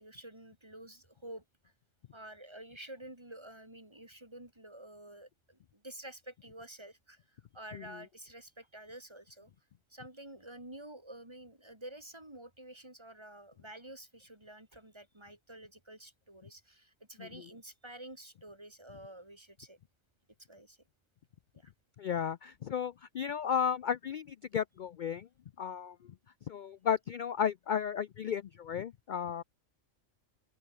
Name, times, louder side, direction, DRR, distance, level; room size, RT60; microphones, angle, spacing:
voice 1, 0.0-1.4 2.1-9.5 9.9-19.8 20.5-20.8 21.5-21.7, right 1 dB, 20° right, 3.3 m, -50 dB
voice 2, 22.0-25.3 25.6-26.0 26.5-29.4, left 8 dB, 75° left, 0.4 m, -34 dB
open air
omnidirectional pair, 1.3 m